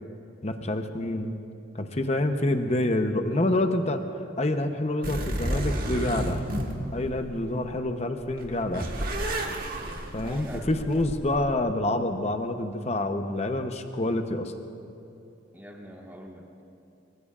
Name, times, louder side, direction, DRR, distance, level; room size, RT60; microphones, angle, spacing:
voice 1, 0.4-1.3 1.7-4.0 4.4-6.4 6.9-8.9 10.1-14.5, left 1 dB, 35° left, 6 dB, 0.8 m, -27 dB
sound 1, 5.0-7.8 8.2-11.6, right 1 dB, 50° right, 1.5 m, -32 dB
voice 2, 10.2-11.1 15.5-16.7, right 1 dB, 10° right, -1 dB, 1.6 m, -44 dB
24.5 x 22.5 x 2.5 m, 2.8 s
head